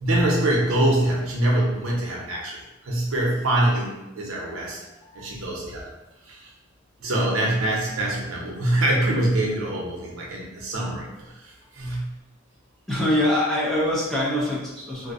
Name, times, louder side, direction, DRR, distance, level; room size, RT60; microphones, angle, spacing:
voice 1, 0.0-4.8 5.1-5.9 6.3-6.5 7.0-12.2, right 1 dB, 80° right, -3 dB, 0.6 m, -24 dB
voice 2, 12.9-15.1, left 1 dB, ahead, -6 dB, 0.4 m, -24 dB
2.5 x 2.1 x 2.4 m, 0.97 s
head